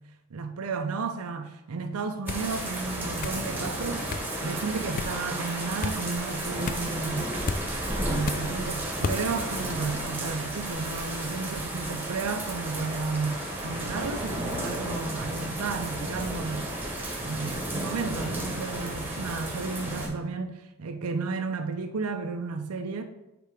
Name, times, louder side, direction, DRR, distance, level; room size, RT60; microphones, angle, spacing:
voice 1, 0.3-4.1 4.4-7.3 7.9-16.7 17.2-23.0, right 4 dB, 90° right, 0.6 m, -33 dB
sound 1, 2.3-2.5 3.2-3.5 4.1-4.3 5.0-5.2 5.8-6.0 6.7-6.9 7.5-7.6 8.3-8.5 9.0-9.2, left 4 dB, 40° left, 0.3 m, -32 dB
sound 2, 2.3-20.1, right 1 dB, 10° right, 1.2 m, -33 dB
8.2 x 3.4 x 4.8 m
head